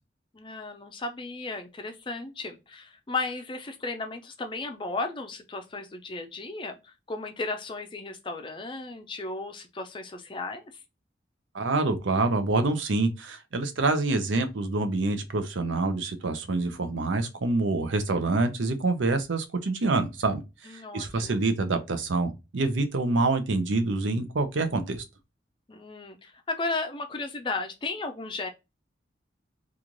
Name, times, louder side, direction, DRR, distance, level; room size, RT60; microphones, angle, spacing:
voice 1, 0.3-10.8 20.7-21.3 25.7-28.5, left 3 dB, 25° left, 0.4 m, -35 dB
voice 2, 11.5-25.0, right 3 dB, 90° right, 0.6 m, -26 dB
3.1 x 2.4 x 3.7 m
head